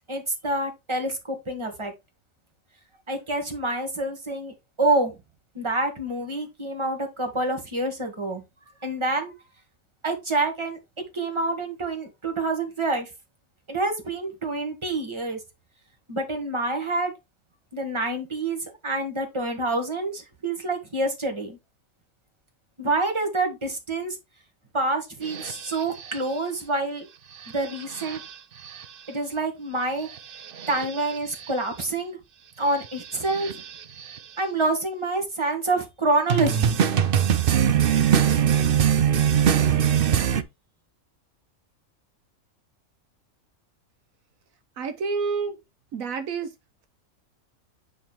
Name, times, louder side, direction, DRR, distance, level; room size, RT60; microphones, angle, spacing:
voice 1, 0.1-1.9 3.1-5.2 5.6-8.4 8.8-9.3 10.0-10.8 11.1-13.1 13.7-15.4 16.1-17.1 17.7-21.6 22.8-24.2 24.7-27.1 27.5-28.2 29.1-30.1 30.7-32.2 32.6-33.5 34.4-36.8, right 2 dB, 20° right, 1.9 m, -27 dB
sound 1, 25.2-26.2 27.4-28.3 28.6-28.8 30.1-31.5 32.8-34.2 36.3-40.4, right 8 dB, 55° right, 0.7 m, -23 dB
voice 2, 44.8-45.6 45.9-46.5, right 5 dB, 80° right, 1.3 m, -28 dB
9.0 x 3.7 x 4.4 m
omnidirectional pair, 1.4 m